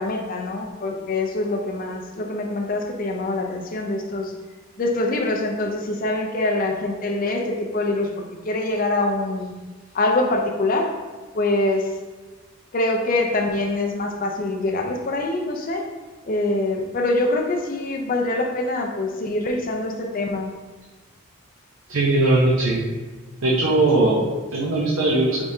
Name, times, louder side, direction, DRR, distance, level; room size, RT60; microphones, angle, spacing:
voice 1, 0.0-4.3 4.8-9.5 9.9-10.9 11.3-11.9 12.7-15.9 16.3-20.5, left 2 dB, 40° left, 2 dB, 0.5 m, -24 dB
voice 2, 21.9-22.8 23.4-25.4, right 2 dB, 65° right, -5 dB, 0.6 m, -19 dB
5.0 x 3.4 x 2.7 m, 1.3 s
head